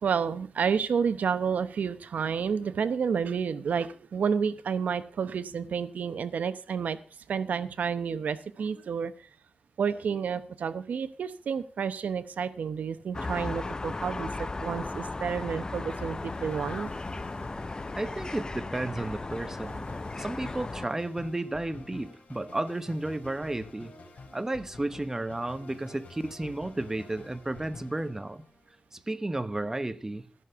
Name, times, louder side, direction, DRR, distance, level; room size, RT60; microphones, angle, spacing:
voice 1, 0.0-7.0 7.3-9.3 9.8-16.9, right 6 dB, 90° right, 0.8 m, -30 dB
sound 1, 13.1-20.9, left 3 dB, 30° left, 0.5 m, -36 dB
sound 2, 15.9-28.8, left 3 dB, 75° left, 4.4 m, -49 dB
voice 2, 17.9-19.9 20.2-23.9 24.3-28.4 28.9-30.2, right 2 dB, 20° right, 1.0 m, -33 dB
15.0 x 6.6 x 6.7 m
wide cardioid pair, 90°, 3 cm